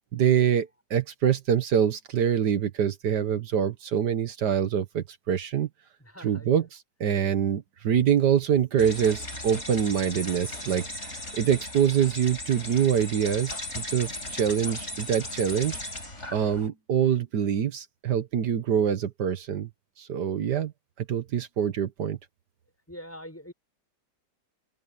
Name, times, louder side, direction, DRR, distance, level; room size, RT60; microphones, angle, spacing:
voice 1, 0.1-5.7 6.2-15.8 16.3-19.7 20.0-20.7 21.1-22.2, right 8 dB, 80° right, 1.8 m, -25 dB
voice 2, 6.0-6.7 22.9-23.5, equal, 10° left, 6.0 m, -43 dB
sound 1, 8.8-16.7, left 1 dB, 40° left, 8.4 m, -37 dB
omnidirectional pair, 1.8 m